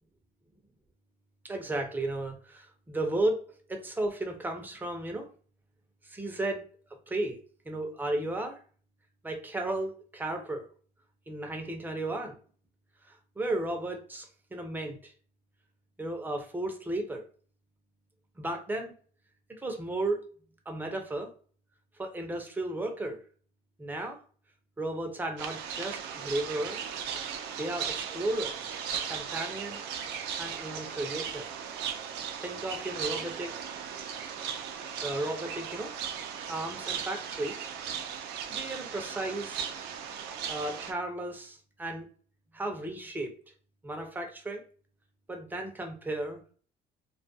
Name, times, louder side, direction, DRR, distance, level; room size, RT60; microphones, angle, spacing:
voice 1, 1.5-3.4 3.7-5.3 6.0-6.6 7.1-7.4 7.7-8.6 9.2-10.7 11.3-12.4 13.4-15.1 16.0-17.2 18.4-18.9 19.5-20.2 20.7-21.3 22.0-23.2 23.8-24.2 24.8-26.8 27.6-28.8 29.0-29.8 30.4-31.5 32.4-33.5 35.0-35.9 36.5-37.6 38.5-39.7 40.5-42.0 42.5-43.3 43.8-44.6 45.3-46.4, right 2 dB, 10° right, 3 dB, 0.5 m, -34 dB
sound 1, 25.4-40.9, right 8 dB, 85° right, 0.4 m, -37 dB
2.3 x 2.2 x 2.6 m, 0.42 s
cardioid pair, 110°, 17 cm